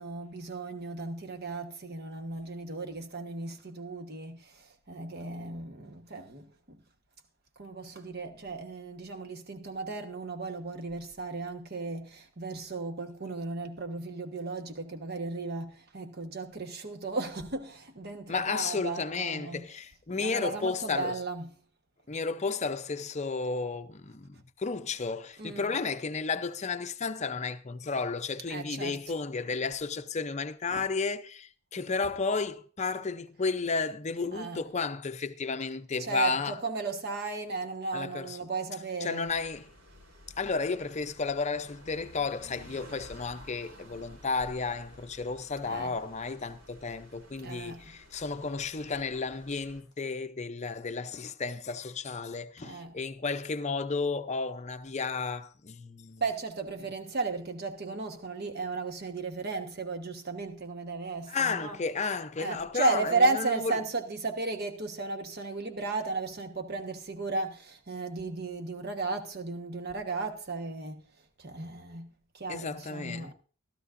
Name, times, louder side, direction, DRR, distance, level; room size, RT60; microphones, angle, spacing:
voice 1, 0.0-6.8 7.6-19.7 20.2-21.5 25.4-25.6 28.5-29.0 34.3-34.6 36.0-39.3 45.6-46.0 47.4-47.8 52.6-53.0 56.2-61.8 62.4-71.0 71.4-73.3, right 3 dB, 50° right, 1.3 m, -34 dB
voice 2, 18.3-21.1 22.1-36.6 37.9-38.4 39.0-39.7 40.4-56.2 61.3-63.7 72.5-73.3, left 4 dB, 35° left, 0.6 m, -33 dB
sound 1, 39.2-49.8, left 1 dB, 70° right, 3.5 m, -53 dB
15.5 x 13.0 x 2.6 m
head